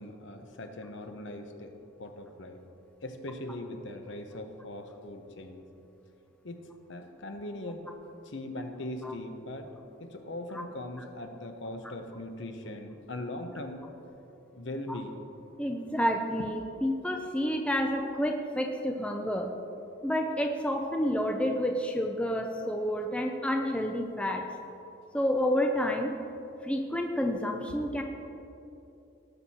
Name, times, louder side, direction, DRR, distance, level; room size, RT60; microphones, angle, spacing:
voice 1, 0.0-2.6 3.0-5.6 6.4-6.6 6.9-7.8 8.2-9.7 10.0-13.9 14.5-15.2, left 1 dB, 60° left, 6 dB, 0.9 m, -40 dB
voice 2, 15.6-19.5 20.0-24.5 25.1-26.1 26.6-28.0, equal, 5° left, 3 dB, 0.5 m, -29 dB
18.0 x 6.3 x 4.3 m, 2.8 s
head